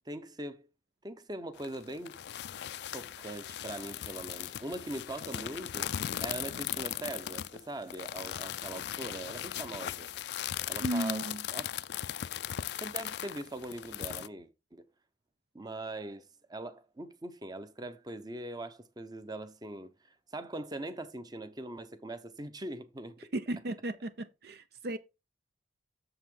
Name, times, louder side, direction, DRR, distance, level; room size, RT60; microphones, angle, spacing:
voice 1, 0.1-0.7 1.0-2.2 2.9-5.9 6.2-10.1 10.7-11.7 12.7-14.8 15.5-23.3, right 1 dB, 20° right, 0.8 m, -41 dB
sound 1, 1.6-14.3, left 10 dB, 60° left, 0.4 m, -38 dB
voice 2, 10.8-11.5 23.2-25.0, right 1 dB, 60° right, 0.6 m, -35 dB
8.0 x 7.0 x 3.8 m
head